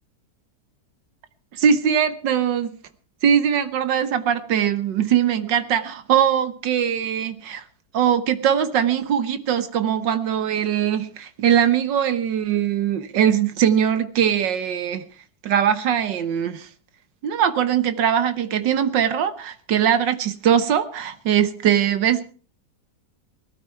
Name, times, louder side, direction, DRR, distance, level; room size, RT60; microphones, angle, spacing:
voice 1, 1.5-2.8 3.2-7.6 7.9-15.0 15.4-16.7 17.2-22.3, right 9 dB, 85° right, 1.8 m, -21 dB
18.0 x 12.5 x 4.6 m
omnidirectional pair, 1.9 m